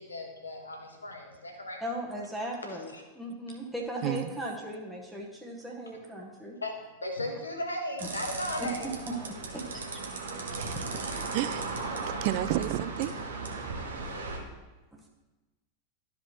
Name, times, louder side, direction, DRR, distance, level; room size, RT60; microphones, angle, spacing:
voice 1, 0.0-1.8 2.6-3.0 6.6-8.9 10.6-10.7 14.1-14.5, left 1 dB, 80° left, 1 dB, 1.3 m, -37 dB
voice 2, 1.8-6.6 8.6-10.0 10.7-10.9 11.2-11.3 14.9-15.0, right 1 dB, ahead, -2 dB, 1.1 m, -37 dB
sound 1, 8.0-14.4, right 3 dB, 65° right, 1.1 m, -36 dB
voice 3, 11.3-11.6 12.1-13.2, right 13 dB, 45° right, 15 dB, 0.3 m, -30 dB
12.5 x 5.1 x 3.1 m, 1.2 s
figure-of-eight pair, 90°, 0 cm